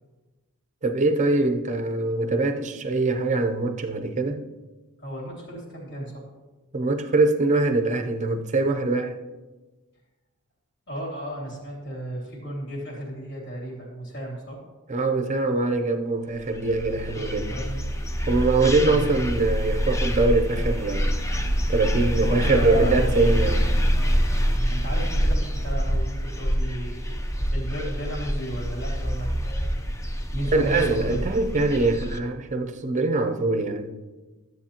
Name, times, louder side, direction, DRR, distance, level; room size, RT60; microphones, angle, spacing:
voice 1, 0.8-4.4 6.7-9.2 14.9-17.6 18.3-21.2 21.7-23.7 30.5-33.9, right 3 dB, 35° right, 0.6 m, -23 dB
voice 2, 5.0-6.2 10.9-14.6 17.1-17.9 18.9-19.3 22.2-23.3 24.5-29.7 30.3-31.2, right 1 dB, 50° left, 3.0 m, -34 dB
sound 1, 16.5-32.2, equal, 15° left, 0.6 m, -26 dB
13.0 x 7.7 x 2.9 m
head